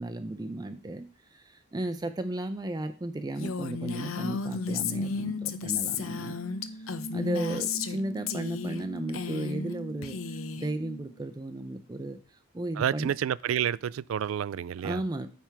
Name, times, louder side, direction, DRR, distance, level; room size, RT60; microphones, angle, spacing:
voice 1, 0.0-6.4 6.7-13.1 14.8-15.3, right 1 dB, 20° right, 0.5 m, -35 dB
Female speech woman speaking, 3.4-8.0 8.3-8.8 9.1-9.7 10.0-10.7, left 5 dB, 85° left, 0.7 m, -33 dB
sound 1, 4.1-11.2 11.5-11.6, left 1 dB, 55° left, 0.9 m, -41 dB
voice 2, 12.8-15.0, right 9 dB, 80° right, 0.3 m, -29 dB
9.0 x 3.5 x 5.8 m
head